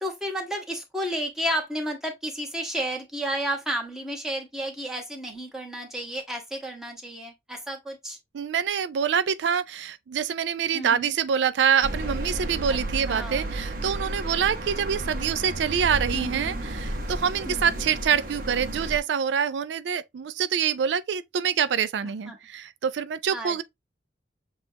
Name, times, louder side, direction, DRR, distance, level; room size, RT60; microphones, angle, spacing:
voice 1, 0.0-8.2 10.7-11.1 12.7-12.8 13.1-13.5 16.1-16.7 17.5-17.9 22.3-22.4 23.3-23.6, equal, 5° right, 1.2 m, -32 dB
voice 2, 8.3-23.6, right 7 dB, 85° right, 0.4 m, -26 dB
sound 1, 11.8-19.0, right 1 dB, 50° right, 0.9 m, -32 dB
7.1 x 2.4 x 2.7 m
head